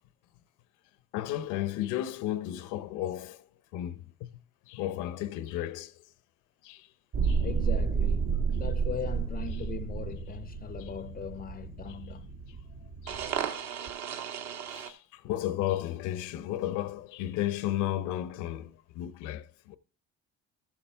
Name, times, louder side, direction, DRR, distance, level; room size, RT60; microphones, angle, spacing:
voice 1, 1.1-3.5 3.7-4.3 4.7-5.9 6.6-6.9 7.2-7.4 13.0-13.2 14.7-19.8, left 13 dB, 80° left, 0.7 m, -33 dB
sound 1, 7.1-14.9, right 6 dB, 65° right, 1.3 m, -32 dB
voice 2, 7.4-12.3, left 8 dB, 30° left, 0.5 m, -40 dB
13.5 x 7.3 x 3.4 m
supercardioid pair, 90°, 30 cm